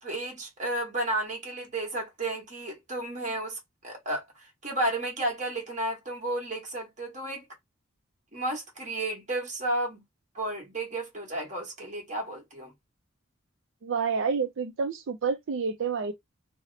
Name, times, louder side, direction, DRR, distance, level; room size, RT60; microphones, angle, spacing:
voice 1, 0.0-7.4 8.3-10.0 10.3-12.7, right 1 dB, 35° right, 1.3 m, -32 dB
voice 2, 13.8-16.1, right 5 dB, 70° right, 0.4 m, -29 dB
2.8 x 2.0 x 3.8 m
head